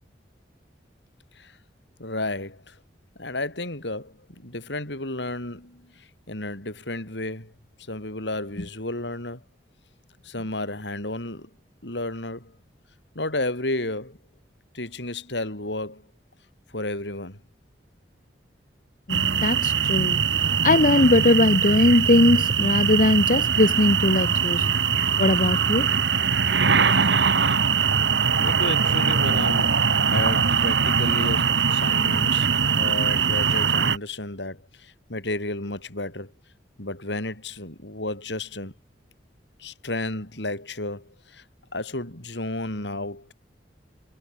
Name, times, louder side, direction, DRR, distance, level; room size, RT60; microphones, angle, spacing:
voice 1, 2.0-2.7 3.2-4.1 4.4-7.5 7.9-9.4 10.2-11.5 11.8-12.5 13.1-14.2 14.7-16.0 16.7-17.4 28.0-28.1 28.4-32.5 32.8-36.3 36.8-38.7 39.6-41.4 41.7-43.3, left 2 dB, 75° left, 5.9 m, -32 dB
voice 2, 19.1-20.2 20.6-24.7 25.2-25.9, left 2 dB, 50° left, 1.4 m, -20 dB
sound 1, 19.1-34.0, right 6 dB, 80° right, 1.5 m, -22 dB
head